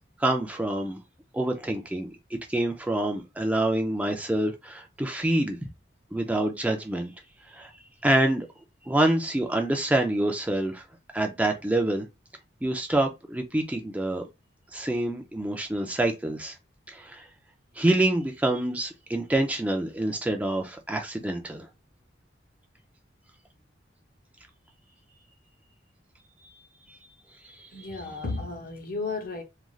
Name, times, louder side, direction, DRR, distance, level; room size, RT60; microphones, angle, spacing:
voice 1, 0.2-1.0 1.3-2.1 2.5-5.6 6.1-7.1 7.5-7.7 8.0-8.5 8.9-10.8 11.1-12.1 12.6-14.3 14.7-16.6 16.9-17.3 17.8-21.7 26.9-27.0 27.4-27.7, right 1 dB, 10° right, 0.3 m, -26 dB
voice 2, 27.7-29.4, left 3 dB, 50° left, 0.7 m, -33 dB
3.1 x 2.4 x 2.3 m
head